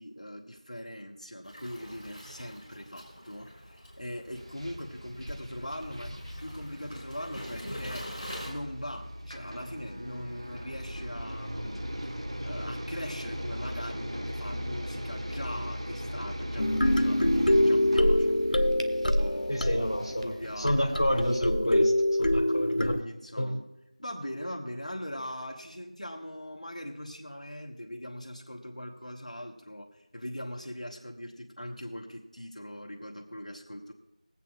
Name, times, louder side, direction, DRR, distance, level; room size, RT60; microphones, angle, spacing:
voice 1, 0.0-12.1 12.4-18.3 19.0-19.6 20.2-20.8 22.8-23.7 24.0-33.9, equal, 65° left, 0 dB, 1.4 m, -41 dB
Waves surf, 1.4-8.5, equal, 5° right, 2.5 m, -44 dB
sound 1, 4.3-21.4, equal, 45° right, 0.7 m, -39 dB
sound 2, 16.6-23.0, left 1 dB, 85° left, 0.7 m, -25 dB
voice 2, 19.5-21.9 22.2-22.9 23.4-23.6, equal, 35° left, -2 dB, 1.6 m, -29 dB
21.5 x 8.2 x 2.5 m, 0.90 s
figure-of-eight pair, 180°, 4 cm